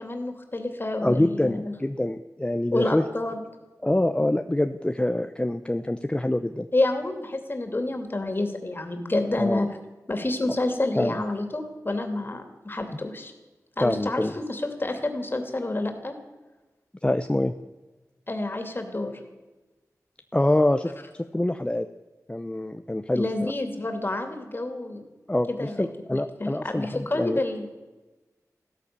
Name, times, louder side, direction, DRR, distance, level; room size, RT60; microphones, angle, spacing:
voice 1, 0.0-1.7 2.7-3.4 6.7-9.7 10.1-13.3 13.8-16.1 18.3-19.1 23.1-25.0 25.5-27.7, left 2 dB, 35° left, 6 dB, 2.7 m, -29 dB
voice 2, 1.0-3.0 3.8-6.7 9.4-9.6 10.9-11.2 13.8-14.3 17.0-17.5 20.3-21.9 22.3-23.5 25.3-27.4, left 1 dB, 15° left, 8 dB, 0.6 m, -25 dB
15.0 x 13.0 x 6.8 m, 1.2 s
wide cardioid pair, 70°, 6 cm